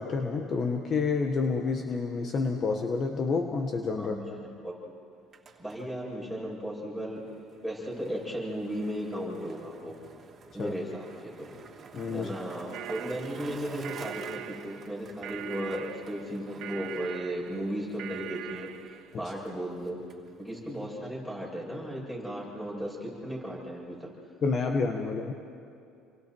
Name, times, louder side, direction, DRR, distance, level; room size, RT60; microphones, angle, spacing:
voice 1, 0.0-4.4 10.6-10.7 11.9-12.3 19.1-19.3 24.4-25.3, left 4 dB, 40° left, 4 dB, 1.4 m, -29 dB
Skateboard, 5.1-20.8, right 5 dB, 35° right, 3.0 m, -50 dB
voice 2, 5.6-7.2 7.6-9.9 10.5-11.1 11.4-11.5 12.1-18.7 19.2-20.0 20.4-24.1, equal, 5° left, -3 dB, 7.6 m, -35 dB
sound 1, 12.7-19.2, right 12 dB, 70° right, 0.9 m, -42 dB
29.5 x 24.0 x 4.6 m, 2.5 s
cardioid pair, 110°, 0 cm